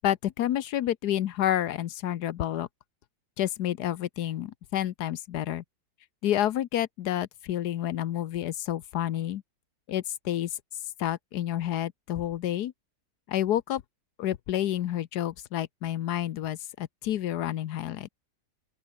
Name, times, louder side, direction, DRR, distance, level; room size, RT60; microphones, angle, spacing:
voice 1, 0.0-2.7 3.4-5.6 6.2-9.4 9.9-10.5 11.0-12.7 13.3-13.8 14.2-18.1, left 12 dB, 75° left, 1.3 m, -29 dB
open air
omnidirectional pair, 1.8 m